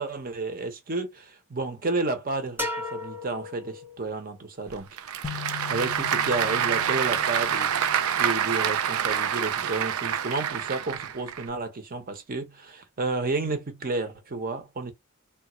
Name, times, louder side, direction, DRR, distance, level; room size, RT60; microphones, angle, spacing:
voice 1, 0.0-4.9 5.7-7.7 8.2-14.9, right 3 dB, 45° right, 0.8 m, -31 dB
sound 1, 2.6-4.3, left 1 dB, 10° right, 0.6 m, -35 dB
Applause / Crowd, 4.7-11.4, right 8 dB, 85° right, 0.5 m, -27 dB
sound 2, 5.2-9.2, left 11 dB, 30° left, 0.6 m, -42 dB
3.4 x 2.3 x 3.0 m
head